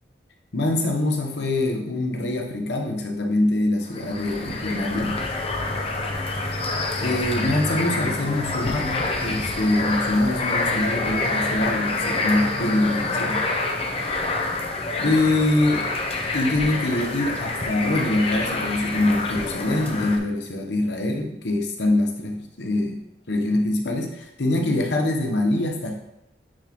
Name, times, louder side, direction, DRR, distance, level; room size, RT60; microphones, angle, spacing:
voice 1, 0.5-5.2 7.0-13.5 15.0-15.9 16.3-23.0 23.3-25.9, left 2 dB, 85° left, 3 dB, 1.0 m, -24 dB
sound 1, 3.9-20.2, left 2 dB, 35° left, 0.8 m, -27 dB
8.7 x 4.2 x 3.0 m, 0.84 s
head